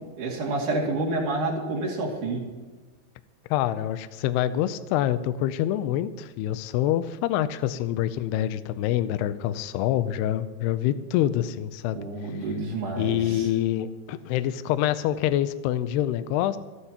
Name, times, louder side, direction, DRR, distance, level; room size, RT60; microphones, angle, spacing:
voice 1, 0.0-2.4 11.9-13.5, right 2 dB, 50° right, -2 dB, 3.5 m, -29 dB
voice 2, 3.5-12.0 13.0-16.6, left 12 dB, 85° left, 12 dB, 2.5 m, -26 dB
27.0 x 11.5 x 2.9 m, 1.3 s
omnidirectional pair, 5.1 m